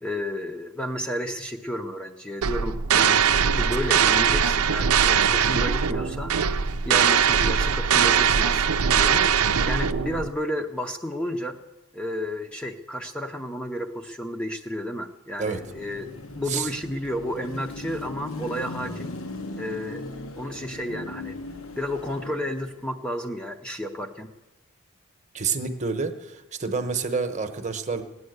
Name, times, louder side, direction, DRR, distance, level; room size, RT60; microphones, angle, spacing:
voice 1, 0.0-6.3 6.8-9.4 9.7-11.6 11.9-19.1 19.6-20.0 20.4-21.4 21.8-24.3, equal, 5° left, 2 dB, 0.7 m, -32 dB
sound 1, 2.4-10.3, right 7 dB, 80° right, 0.6 m, -21 dB
Car passing by / Traffic noise roadway noise / Engine, 15.5-22.9, left 2 dB, 70° left, 1.0 m, -38 dB
voice 2, 25.3-28.0, right 5 dB, 30° right, 8 dB, 1.0 m, -28 dB
18.5 x 9.7 x 8.0 m, 1.1 s
head